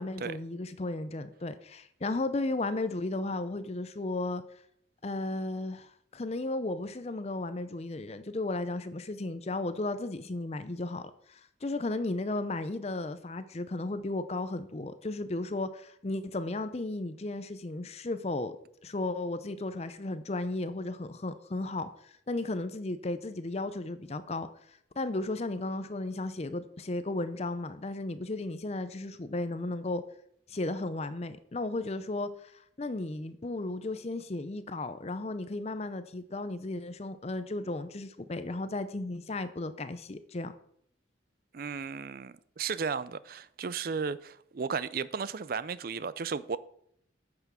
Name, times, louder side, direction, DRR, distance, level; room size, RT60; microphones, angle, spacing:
voice 1, 0.0-4.4 5.0-18.5 18.8-30.0 30.5-40.5, left 2 dB, 35° left, 0.5 m, -34 dB
voice 2, 41.5-46.6, right 5 dB, 50° right, 0.4 m, -34 dB
8.8 x 5.9 x 6.1 m
head